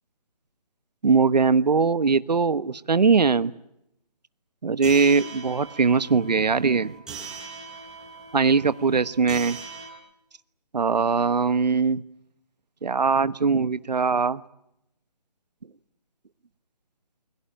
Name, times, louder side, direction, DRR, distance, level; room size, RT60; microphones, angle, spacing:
voice 1, 1.0-3.5 4.6-7.0 8.3-9.6 10.7-12.0 12.8-14.4, right 5 dB, 85° right, 14 dB, 1.3 m, -21 dB
sound 1, 4.8-9.9, right 5 dB, 5° right, 5.0 m, -40 dB
29.0 x 22.0 x 9.0 m, 0.82 s
hypercardioid pair, 170°, 21 cm